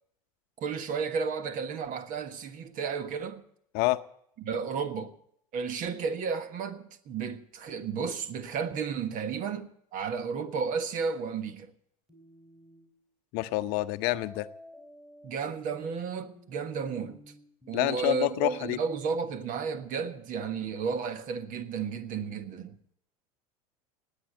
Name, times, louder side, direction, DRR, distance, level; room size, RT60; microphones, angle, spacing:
voice 1, 0.6-3.4 4.4-5.1 5.5-11.7 15.2-17.2 17.7-22.8, right 6 dB, 45° right, 1.5 m, -33 dB
sound 1, 12.1-12.9 14.0-19.1, left 1 dB, 5° right, 4.6 m, -52 dB
voice 2, 13.3-14.5 17.7-18.8, left 18 dB, 55° left, 0.7 m, -28 dB
19.0 x 8.8 x 8.1 m
hypercardioid pair, 90°, 19 cm